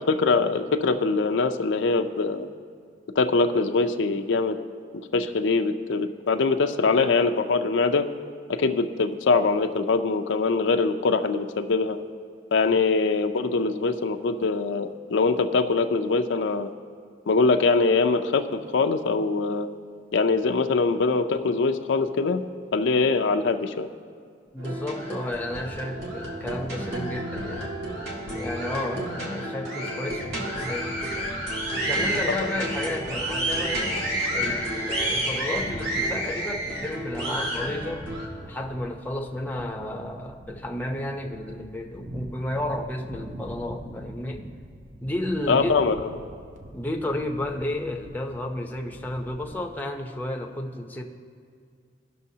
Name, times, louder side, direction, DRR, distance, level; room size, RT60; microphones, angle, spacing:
voice 1, 0.1-2.5 3.2-4.6 5.1-8.0 8.5-12.0 12.5-16.7 17.3-18.4 18.7-19.7 20.1-22.4 22.7-23.9 45.5-46.1, left 4 dB, 80° left, 6 dB, 0.5 m, -23 dB
voice 2, 24.5-27.8 28.3-31.3 31.7-34.0 34.3-38.1 38.4-44.4 45.0-45.8 46.7-51.0, left 1 dB, 10° left, 2 dB, 0.6 m, -32 dB
sound 1, 24.6-38.3, right 1 dB, 65° right, 1.9 m, -30 dB
sound 2, 31.0-49.6, right 1 dB, 45° right, 0.7 m, -44 dB
18.0 x 6.2 x 2.8 m, 2.2 s
head